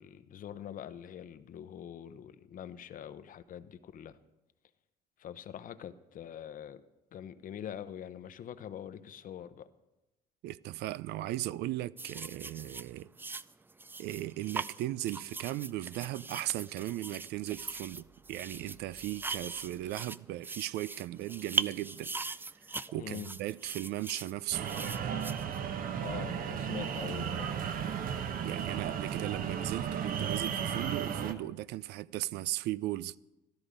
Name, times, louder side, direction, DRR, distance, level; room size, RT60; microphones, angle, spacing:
voice 1, 0.0-4.2 5.2-6.8 7.1-9.7 23.0-23.3 26.0-27.6, left 9 dB, 55° left, 0.8 m, -44 dB
voice 2, 10.4-13.1 14.0-22.3 22.6-24.7 27.9-28.0 28.4-33.2, right 15 dB, 80° right, 0.4 m, -37 dB
sound 1, 12.0-26.0 26.8-27.0, right 3 dB, 10° right, 0.3 m, -40 dB
sound 2, 24.5-31.3, right 8 dB, 55° right, 1.0 m, -34 dB
13.0 x 13.0 x 5.0 m
cardioid pair, 110°, 17 cm